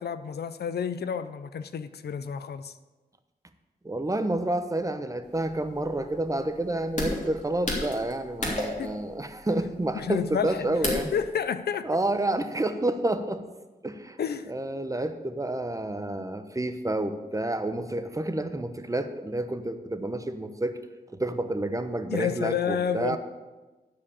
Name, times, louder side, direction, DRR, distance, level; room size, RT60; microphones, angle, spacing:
voice 1, 0.0-2.7 8.8-9.0 9.9-11.9 14.2-14.5 22.1-23.2, left 7 dB, 85° left, 0.6 m, -30 dB
voice 2, 3.8-11.1 11.8-13.4 13.8-14.2 14.5-20.8 21.1-23.2, right 1 dB, 20° right, 0.9 m, -29 dB
sound 1, 5.3-11.2, left 2 dB, 50° left, 3.3 m, -33 dB
12.5 x 5.0 x 8.6 m
wide cardioid pair, 75°, 16 cm